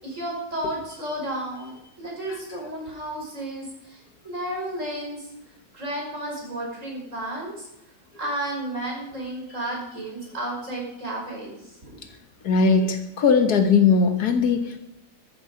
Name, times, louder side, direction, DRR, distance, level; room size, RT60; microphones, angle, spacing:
voice 1, 0.0-5.3 5.7-7.7 8.2-12.0, right 1 dB, 55° right, -2 dB, 6.0 m, -32 dB
voice 2, 12.4-14.8, left 5 dB, 90° left, 7 dB, 2.1 m, -19 dB
13.5 x 13.0 x 5.1 m, 0.88 s
omnidirectional pair, 1.6 m